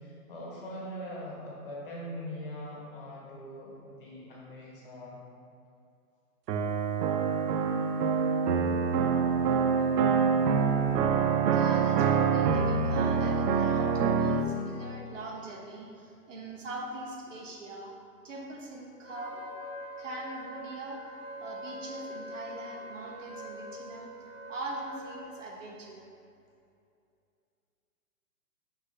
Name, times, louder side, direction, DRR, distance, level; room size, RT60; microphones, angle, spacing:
voice 1, 0.0-5.2 9.5-9.6, equal, 35° left, -5 dB, 1.3 m, -42 dB
sound 1, 6.5-14.5, right 6 dB, 85° right, 0.7 m, -25 dB
voice 2, 11.5-17.9 18.2-19.4 20.0-21.0 21.3-24.1 24.5-26.0, right 2 dB, 50° right, -1 dB, 0.9 m, -41 dB
Wind instrument woodwind instrument, 19.0-25.2, equal, 15° right, 1.4 m, -43 dB
6.7 x 6.0 x 2.7 m, 2.5 s
hypercardioid pair, 175°, 47 cm